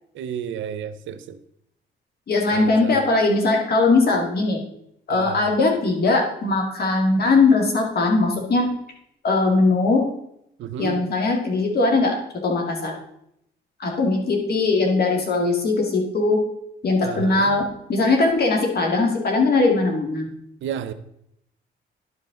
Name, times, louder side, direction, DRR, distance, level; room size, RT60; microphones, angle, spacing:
voice 1, 0.1-1.4 2.5-3.0 5.1-5.4 10.6-11.1 17.0-17.6 20.6-20.9, right 8 dB, 75° right, 11 dB, 0.6 m, -31 dB
voice 2, 2.3-4.6 5.1-8.7 9.2-10.0 10.8-12.1 12.4-13.0 13.8-16.4 16.8-17.6 17.9-20.3, left 3 dB, 50° left, 1 dB, 2.0 m, -20 dB
11.0 x 5.4 x 3.7 m, 0.77 s
cardioid pair, 90°, 20 cm